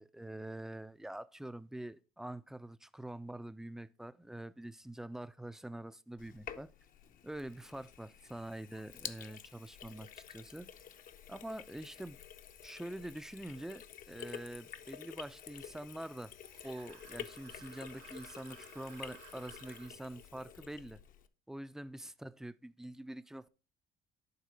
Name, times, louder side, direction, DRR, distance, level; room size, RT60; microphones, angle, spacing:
voice 1, 0.0-6.7 7.2-10.7 11.3-12.2 12.6-16.3 16.6-21.0 21.5-23.5, right 1 dB, 5° right, 0.3 m, -45 dB
Sink (filling or washing), 6.2-21.3, left 9 dB, 55° left, 0.6 m, -50 dB
sound 1, 16.4-19.9, right 12 dB, 85° right, 0.6 m, -58 dB
9.4 x 3.7 x 5.0 m
cardioid pair, 110°, 17 cm